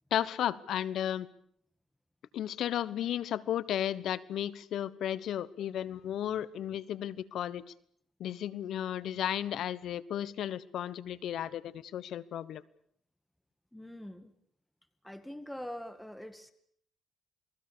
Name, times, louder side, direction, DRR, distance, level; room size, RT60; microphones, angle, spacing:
voice 1, 0.1-1.3 2.3-7.6 8.2-12.6, left 10 dB, 75° left, 18 dB, 1.1 m, -34 dB
voice 2, 13.7-14.3 15.0-16.5, left 1 dB, 5° left, 10 dB, 2.0 m, -43 dB
29.0 x 20.0 x 6.9 m, 0.66 s
cardioid pair, 90°, 0 cm